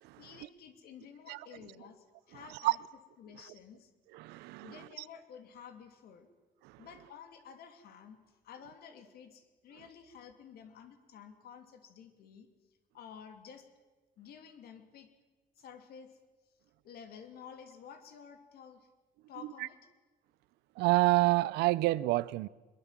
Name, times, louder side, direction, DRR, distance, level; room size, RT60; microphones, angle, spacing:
voice 1, 0.2-2.8 3.2-3.9 4.6-6.3 6.8-12.5 12.9-13.7 14.2-15.1 15.6-16.2 16.8-18.9 19.3-19.9, left 7 dB, 70° left, 2.9 m, -52 dB
voice 2, 4.1-4.9 6.6-6.9 19.6-19.7 20.8-22.5, right 19 dB, 90° right, 0.7 m, -29 dB
22.0 x 22.0 x 7.6 m
cardioid pair, 100°, 17 cm